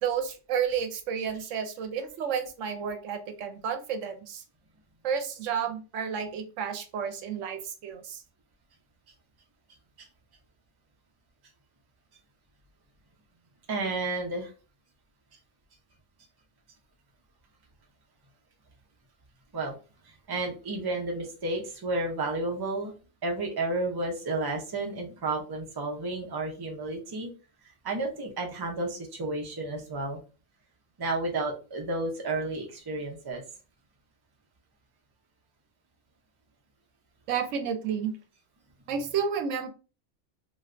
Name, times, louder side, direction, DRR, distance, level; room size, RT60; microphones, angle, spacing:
voice 1, 0.0-4.4 5.0-8.2 37.3-38.1 38.9-39.7, right 7 dB, 80° right, 7 dB, 0.9 m, -31 dB
voice 2, 13.7-14.5 19.5-19.7 20.3-22.9 23.2-27.3 27.8-30.2 31.0-33.4, right 2 dB, 25° right, 1 dB, 0.5 m, -31 dB
3.2 x 2.7 x 2.5 m, 0.33 s
omnidirectional pair, 1.3 m